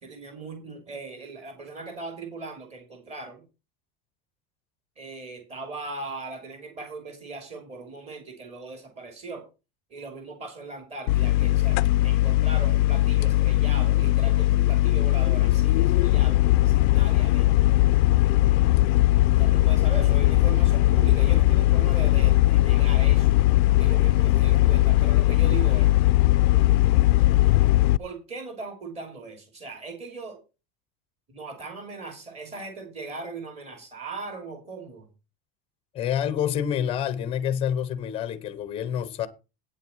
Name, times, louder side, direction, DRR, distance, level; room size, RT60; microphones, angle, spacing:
voice 1, 0.0-3.4 5.0-9.4 9.9-11.8 12.0-17.5 19.4-23.3 23.7-25.9 28.0-30.4 31.3-35.1, right 3 dB, 20° right, 3.0 m, -39 dB
sound 1, 11.1-28.0, left 16 dB, 80° left, 0.5 m, -19 dB
voice 2, 35.9-39.3, left 9 dB, 20° left, 0.8 m, -27 dB
9.0 x 7.6 x 5.6 m
cardioid pair, 180°, 31 cm